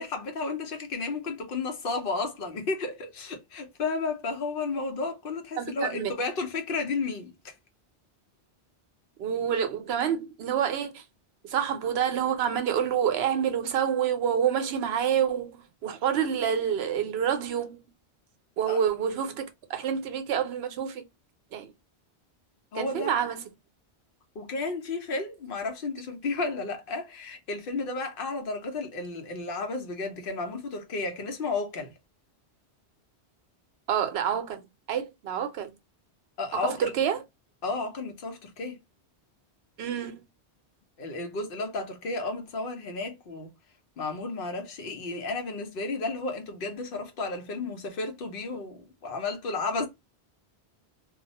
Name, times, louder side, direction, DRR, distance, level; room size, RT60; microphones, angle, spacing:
voice 1, 0.0-7.5 18.7-18.8 22.7-23.1 24.3-31.9 36.4-36.9 37.6-38.8 41.0-43.5 44.0-49.9, left 3 dB, 60° left, 0.8 m, -32 dB
voice 2, 5.6-6.1 9.2-11.0 11.4-17.8 18.6-21.0 21.5-21.7 22.7-23.4 33.9-35.7 36.6-37.2 39.8-40.2, right 8 dB, 70° right, 0.8 m, -28 dB
2.3 x 2.0 x 2.6 m
omnidirectional pair, 1.1 m